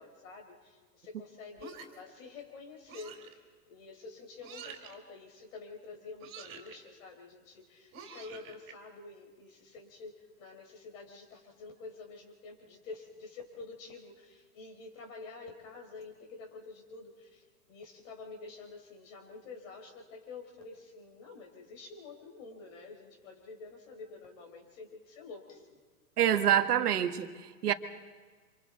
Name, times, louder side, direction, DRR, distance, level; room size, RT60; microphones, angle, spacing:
voice 1, 0.0-25.8, left 4 dB, 55° left, 3 dB, 5.0 m, -48 dB
sound 1, 1.6-2.1 2.9-3.3 4.4-4.9 6.2-6.8 7.9-8.7, right 6 dB, 25° right, 3.2 m, -47 dB
voice 2, 26.2-27.7, right 10 dB, 70° right, 8 dB, 1.6 m, -26 dB
29.5 x 26.0 x 4.1 m, 1.4 s
hypercardioid pair, 120°, 47 cm